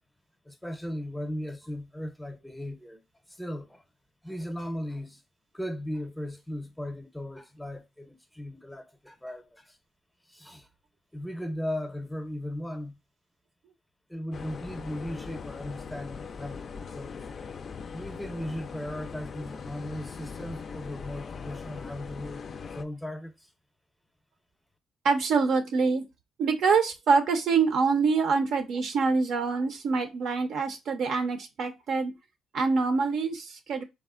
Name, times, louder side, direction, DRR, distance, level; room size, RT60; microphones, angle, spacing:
voice 1, 0.4-3.0 3.3-3.8 4.2-5.2 5.5-9.8 10.3-10.7 11.1-13.0 14.1-17.2 17.9-22.5 22.7-23.5, left 1 dB, 5° left, 0.6 m, -37 dB
sound 1, 14.3-22.8, left 5 dB, 50° left, 0.3 m, -40 dB
voice 2, 25.0-26.0 26.4-32.1 32.5-33.8, right 4 dB, 70° right, 0.6 m, -25 dB
3.5 x 2.1 x 2.3 m
cardioid pair, 90°, 0 cm